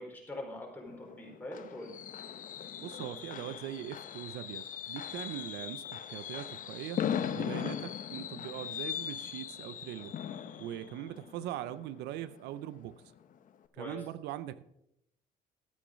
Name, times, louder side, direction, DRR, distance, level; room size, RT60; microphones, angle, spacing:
voice 1, 0.0-2.0 13.8-14.0, left 1 dB, 10° left, -1 dB, 4.3 m, -43 dB
Fireworks, 0.9-12.6 12.9-13.2 13.5-13.6, left 9 dB, 50° left, 0.9 m, -39 dB
voice 2, 2.8-7.1 7.4-10.1 10.6-13.0 13.7-14.6, right 13 dB, 85° right, 16 dB, 0.6 m, -41 dB
13.0 x 8.6 x 5.2 m, 0.80 s
cardioid pair, 110°, 17 cm